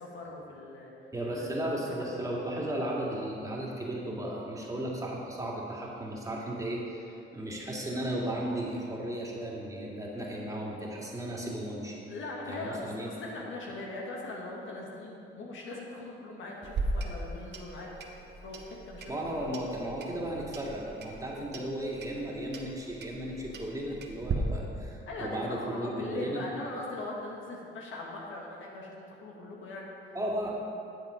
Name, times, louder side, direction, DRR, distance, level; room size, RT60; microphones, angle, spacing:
voice 1, 0.0-1.5 1.8-2.1 12.1-17.9 18.4-19.5 25.1-30.1, left 2 dB, 75° left, -2 dB, 1.9 m, -40 dB
voice 2, 1.1-12.0 12.5-13.1 19.1-26.4 30.1-30.5, right 1 dB, 15° right, -4 dB, 2.2 m, -35 dB
Clock, 16.6-24.3, right 3 dB, 60° right, 1.2 m, -39 dB
10.5 x 7.3 x 5.1 m, 2.6 s
cardioid pair, 90°, 20 cm